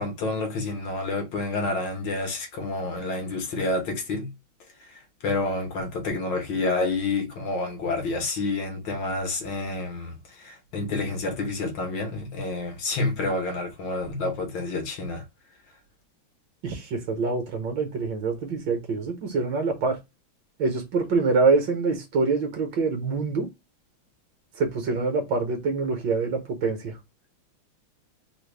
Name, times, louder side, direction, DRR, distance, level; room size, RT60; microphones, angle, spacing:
voice 1, 0.0-4.3 4.8-15.2, left 3 dB, 65° left, 1.6 m, -29 dB
voice 2, 16.6-20.0 20.6-23.5 24.6-26.9, right 4 dB, 65° right, 1.4 m, -25 dB
3.9 x 2.2 x 3.2 m
omnidirectional pair, 2.3 m